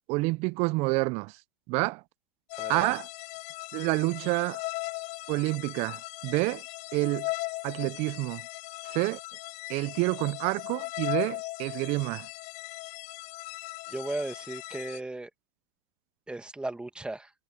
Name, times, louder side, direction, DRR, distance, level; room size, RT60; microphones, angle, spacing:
voice 1, 0.1-1.4 1.7-2.0 2.7-3.1 3.7-4.6 5.3-6.6 6.9-7.3 7.6-8.4 8.8-9.2 9.7-12.3, right 25 dB, 35° right, 0.5 m, -28 dB
sound 1, 2.5-15.0, left 22 dB, 40° left, 0.9 m, -38 dB
voice 2, 2.5-2.9 13.9-15.3 16.3-17.3, right 2 dB, 5° right, 1.6 m, -36 dB
hypercardioid pair, 130°, 18 cm